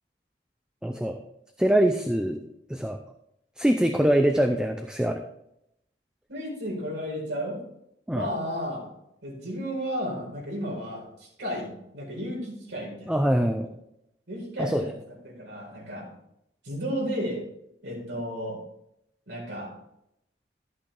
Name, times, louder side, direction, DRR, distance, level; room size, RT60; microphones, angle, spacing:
voice 1, 0.8-1.2 1.6-2.4 2.7-3.0 3.6-5.2 8.1-8.3 13.1-13.7 14.6-14.8, right 1 dB, 5° right, 5 dB, 0.5 m, -23 dB
voice 2, 6.3-7.6 8.1-8.9 9.2-13.1 13.6-13.7 14.3-15.0 15.2-16.1 16.6-17.4 17.8-18.6 19.3-19.7, equal, 85° right, -2 dB, 4.7 m, -33 dB
13.0 x 8.4 x 3.4 m, 0.79 s
head